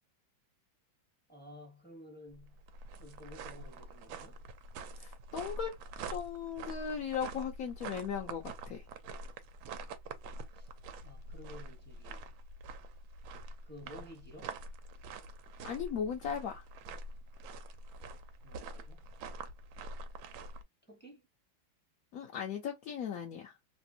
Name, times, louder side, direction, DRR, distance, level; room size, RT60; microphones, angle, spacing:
voice 1, 1.3-2.6 3.0-4.4 10.5-10.7 11.0-12.3 13.6-14.6 18.4-19.1 20.9-21.3, left 1 dB, 10° left, 0.6 m, -53 dB
sound 1, 2.3-20.6, right 3 dB, 90° right, 1.4 m, -46 dB
voice 2, 5.0-5.8 6.1-8.9 15.6-16.6 22.1-23.6, left 7 dB, 70° left, 0.8 m, -37 dB
3.3 x 2.5 x 2.7 m
omnidirectional pair, 2.1 m